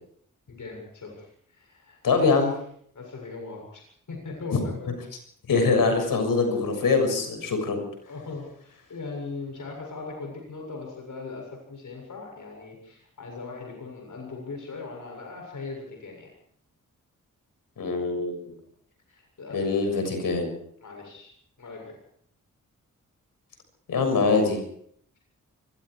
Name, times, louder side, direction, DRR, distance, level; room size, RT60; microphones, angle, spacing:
voice 1, 0.5-2.5 2.9-3.8 4.1-4.9 8.1-16.3 19.1-19.9 20.8-21.3 21.6-22.0, left 3 dB, 65° left, 1 dB, 7.4 m, -39 dB
voice 2, 2.0-2.5 4.5-4.6 5.5-7.8 17.8-18.5 19.5-20.5 23.9-24.6, left 4 dB, 85° left, 5 dB, 6.8 m, -23 dB
25.0 x 21.5 x 4.9 m, 0.65 s
cardioid pair, 55°, 33 cm